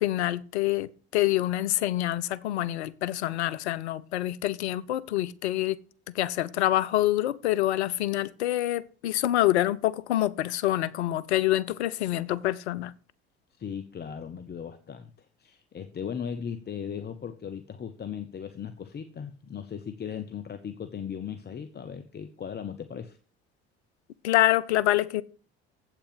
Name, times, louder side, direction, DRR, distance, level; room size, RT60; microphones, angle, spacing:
voice 1, 0.0-5.8 6.1-12.9 24.2-25.2, left 14 dB, 75° left, 0.6 m, -26 dB
voice 2, 13.6-23.2, left 7 dB, 30° left, 0.8 m, -37 dB
8.2 x 6.0 x 7.6 m
figure-of-eight pair, 55°, 33 cm